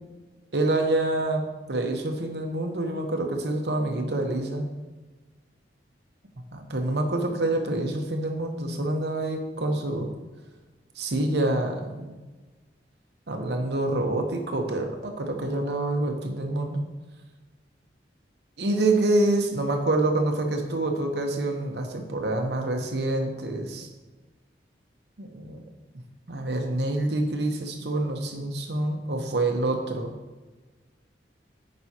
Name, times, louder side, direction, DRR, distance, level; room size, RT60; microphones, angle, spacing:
voice 1, 0.5-4.6 6.5-10.1 11.0-12.1 13.3-16.8 18.6-23.9 25.2-25.6 26.3-30.1, right 2 dB, 70° right, 4 dB, 0.9 m, -27 dB
9.0 x 5.3 x 2.9 m, 1.2 s
head